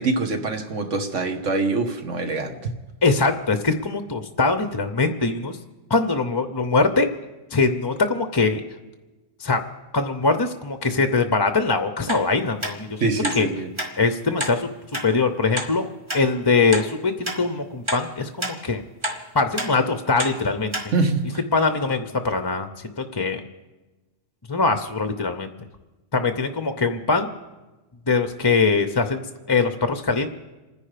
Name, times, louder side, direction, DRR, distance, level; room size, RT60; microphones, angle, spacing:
voice 1, 0.0-2.6 13.0-13.7 20.9-21.4, right 3 dB, 70° right, 6 dB, 1.8 m, -24 dB
voice 2, 3.0-5.6 5.9-7.1 7.5-8.6 9.4-9.6 9.9-13.0 13.4-13.5 14.0-14.7 15.0-18.8 19.3-20.8 21.5-22.7 23.0-23.4 24.5-25.5 26.1-27.3 28.1-30.3, left 4 dB, 25° left, 9 dB, 0.6 m, -22 dB
sound 1, 12.1-12.3 12.6-12.8 13.2-13.4 13.8-13.9 14.4-14.6 14.9-15.1 15.6-15.7 16.1-16.2 16.7-16.9 17.3-17.4 17.9-18.0 18.4-18.6 19.0-19.2 19.6-19.7 20.2-20.4 20.7-20.9 21.3-21.4, equal, 20° right, 1.7 m, -28 dB
28.0 x 10.0 x 5.0 m, 1.1 s
omnidirectional pair, 1.3 m